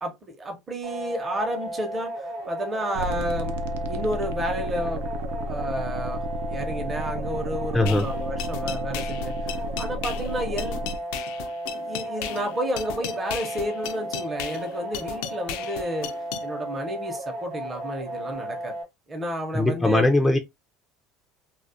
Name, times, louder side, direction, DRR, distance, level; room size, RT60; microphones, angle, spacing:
voice 1, 0.0-3.6 3.8-5.0 5.5-11.0 11.7-16.1 16.4-18.7 19.1-20.0, equal, 25° right, 0.7 m, -31 dB
sound 1, 0.8-18.8, right 1 dB, 70° right, 0.9 m, -34 dB
sound 2, 2.9-11.0, equal, 90° right, 0.4 m, -32 dB
voice 2, 7.7-8.0 19.5-20.4, left 2 dB, 5° left, 0.4 m, -20 dB
sound 3, 7.9-16.5, left 9 dB, 80° left, 0.3 m, -36 dB
2.3 x 2.0 x 2.6 m
supercardioid pair, 120°, 0 cm